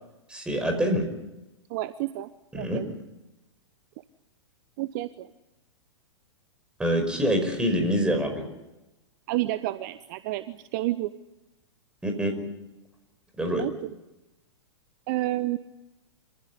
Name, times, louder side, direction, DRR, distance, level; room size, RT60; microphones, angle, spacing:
voice 1, 0.3-1.1 2.5-2.9 6.8-8.4 12.0-12.3 13.4-13.7, equal, 5° right, 5 dB, 5.5 m, -25 dB
voice 2, 1.7-2.9 4.8-5.3 9.3-11.1 13.6-13.7 15.1-15.6, right 16 dB, 40° right, 14 dB, 0.9 m, -30 dB
26.0 x 16.0 x 9.9 m, 0.98 s
figure-of-eight pair, 105°, 15 cm